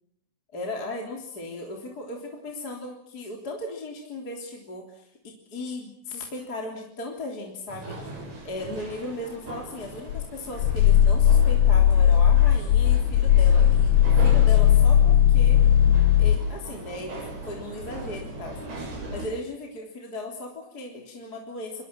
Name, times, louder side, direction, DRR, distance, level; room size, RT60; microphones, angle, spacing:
voice 1, 0.5-8.1 8.4-15.6 16.2-18.6 19.1-21.8, left 2 dB, 25° left, 1 dB, 3.3 m, -37 dB
sound 1, 7.7-19.3, right 2 dB, 60° right, 8.9 m, -39 dB
Growling, 10.1-16.4, left 9 dB, 70° left, 3.1 m, -18 dB
29.0 x 24.5 x 5.9 m, 0.69 s
omnidirectional pair, 5.4 m